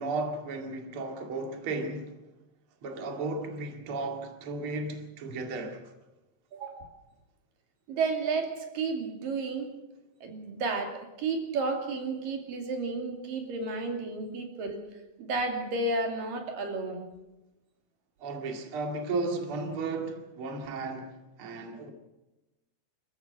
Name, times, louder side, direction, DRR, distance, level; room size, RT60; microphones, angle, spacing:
voice 1, 0.0-2.2 2.8-5.8 18.2-21.9, right 3 dB, 45° right, 2.8 m, -34 dB
voice 2, 6.5-6.9 7.9-9.7 10.2-14.8 15.2-17.0, right 3 dB, 85° right, 4.3 m, -32 dB
26.0 x 14.5 x 7.7 m
omnidirectional pair, 3.8 m